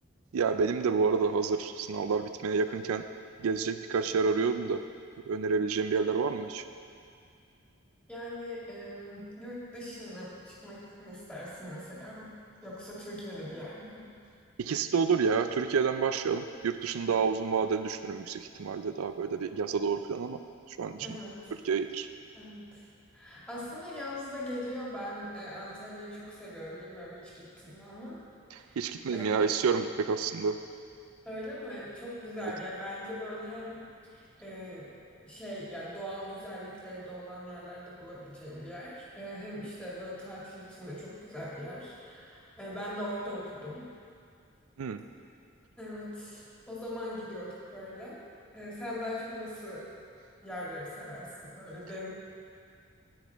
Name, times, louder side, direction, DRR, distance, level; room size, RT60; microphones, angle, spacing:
voice 1, 0.3-3.1 3.4-4.8 5.3-6.6 14.6-20.4 20.7-21.2 21.6-22.1 28.5-30.6 32.4-32.5 44.8-45.0, right 5 dB, 90° right, 9 dB, 0.4 m, -29 dB
voice 2, 8.1-12.3 12.6-14.0 21.0-21.5 22.3-22.8 23.1-28.2 28.6-28.8 29.1-29.4 31.3-34.9 35.3-43.8 45.8-48.2 48.5-49.8 50.4-52.1, equal, 5° left, -8 dB, 2.0 m, -41 dB
11.0 x 9.4 x 3.5 m, 2.3 s
head